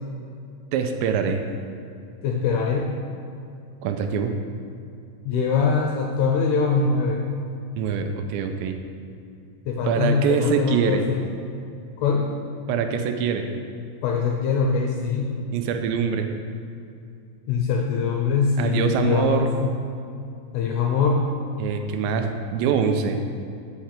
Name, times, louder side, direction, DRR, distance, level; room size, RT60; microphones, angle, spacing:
voice 1, 0.7-1.4 3.8-4.4 7.8-8.8 9.9-11.0 12.7-13.5 15.5-16.3 18.6-19.5 21.6-23.2, right 6 dB, 85° right, 5 dB, 2.8 m, -24 dB
voice 2, 2.2-2.9 5.2-7.2 9.7-11.2 12.0-12.3 14.0-15.3 17.5-19.7 20.5-21.2, left 5 dB, 80° left, 1 dB, 2.3 m, -23 dB
15.0 x 5.7 x 3.4 m, 2.5 s
omnidirectional pair, 5.3 m